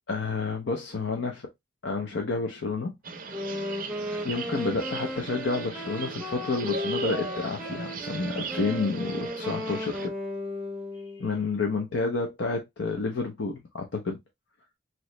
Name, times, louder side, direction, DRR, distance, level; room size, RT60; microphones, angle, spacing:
voice 1, 0.1-1.5 1.8-2.9 3.3-3.4 4.2-10.1 11.1-14.2, left 3 dB, 70° left, 0.6 m, -30 dB
sound 1, 3.0-10.1, right 4 dB, 45° right, 0.5 m, -38 dB
Wind instrument woodwind instrument, 3.3-11.3, left 1 dB, 5° right, 0.7 m, -35 dB
3.0 x 2.9 x 3.1 m
head